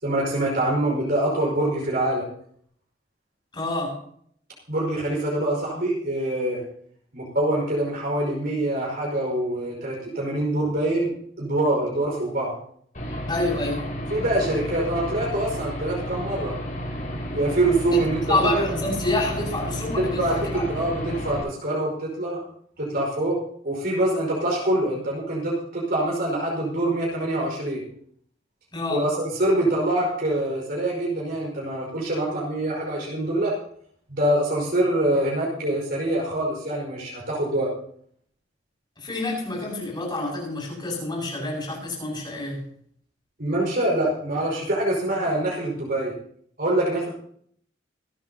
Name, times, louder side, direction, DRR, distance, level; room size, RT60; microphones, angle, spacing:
voice 1, 0.0-2.3 4.7-6.6 7.1-11.1 11.4-12.5 14.1-16.5 17.3-18.2 20.2-22.4 22.8-23.4 23.6-27.8 28.9-33.5 34.1-37.7 43.4-46.1 46.6-47.1, right 1 dB, 55° right, -3 dB, 5.4 m, -25 dB
voice 2, 3.5-4.0 13.3-13.9 18.3-20.7 28.7-29.1 39.0-42.7, left 2 dB, 25° left, -3 dB, 7.7 m, -27 dB
Aircraft / Engine, 12.9-21.4, equal, 45° left, 6.6 m, -32 dB
26.0 x 10.0 x 2.9 m, 0.62 s
head